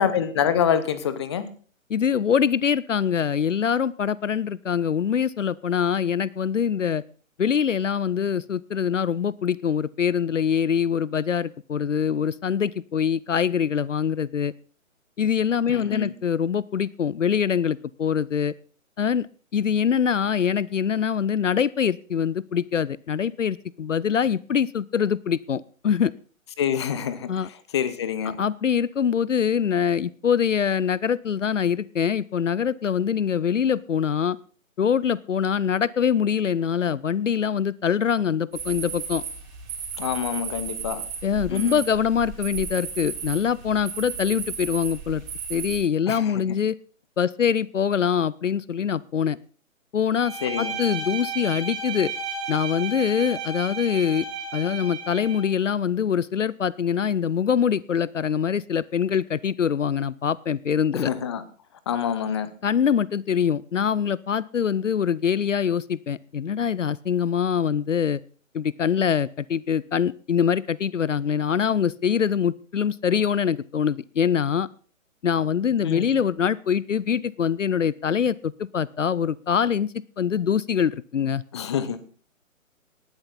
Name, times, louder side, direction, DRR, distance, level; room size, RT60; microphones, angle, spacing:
voice 1, 0.0-1.5 15.7-16.1 26.6-27.3 27.7-28.4 40.0-41.0 41.5-41.8 46.1-46.4 50.4-50.7 60.9-61.4 61.9-62.5 75.8-76.1 81.5-82.0, left 8 dB, 20° left, 14 dB, 0.8 m, -26 dB
voice 2, 1.9-7.0 7.4-14.5 15.2-18.5 19.0-19.3 19.5-26.1 27.3-27.5 28.4-34.4 34.8-39.2 41.2-45.2 45.5-46.8 47.2-49.4 49.9-52.1 52.5-54.3 54.5-61.1 62.6-68.2 68.5-74.7 75.2-81.4, left 7 dB, 65° left, 22 dB, 0.6 m, -24 dB
sound 1, 38.5-45.8, right 6 dB, 35° right, 6.9 m, -34 dB
Bowed string instrument, 50.2-55.5, right 4 dB, 55° right, 7.9 m, -33 dB
18.5 x 12.0 x 4.1 m, 0.42 s
figure-of-eight pair, 140°, 40 cm